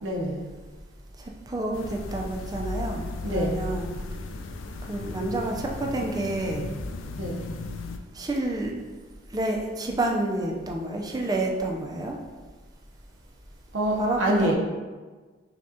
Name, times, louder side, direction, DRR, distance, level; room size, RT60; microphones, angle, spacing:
voice 1, 0.0-0.4 3.2-3.6 7.2-7.4 13.7-14.5, right 1 dB, 80° right, -1 dB, 0.7 m, -26 dB
voice 2, 1.2-3.9 4.9-6.7 8.1-8.7 9.3-12.2 14.0-14.5, right 2 dB, 20° right, 0 dB, 0.4 m, -29 dB
sound 1, 1.7-8.0, left 2 dB, 85° left, 0.3 m, -36 dB
6.0 x 2.3 x 2.7 m, 1.4 s
head